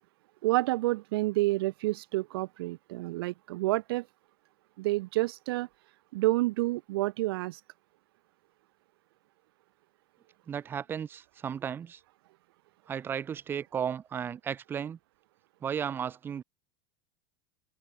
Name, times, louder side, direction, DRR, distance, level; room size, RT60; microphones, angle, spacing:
voice 1, 0.4-4.1 4.8-5.7 6.1-7.6, right 19 dB, 70° right, 0.5 m, -29 dB
voice 2, 10.5-12.0 12.9-15.0 15.6-16.4, right 8 dB, 15° right, 1.3 m, -34 dB
open air
supercardioid pair, 175°, 13 cm